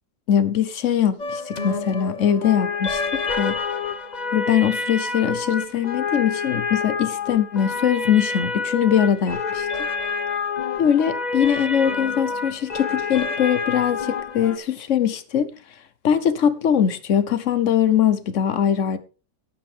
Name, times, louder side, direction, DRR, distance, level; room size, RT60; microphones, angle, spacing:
voice 1, 0.3-3.6 4.3-9.9 10.8-15.5 16.0-19.0, left 9 dB, 55° left, 1.1 m, -21 dB
sound 1, 1.2-14.6, left 4 dB, 30° left, 0.9 m, -28 dB
13.0 x 9.8 x 3.4 m
omnidirectional pair, 1.8 m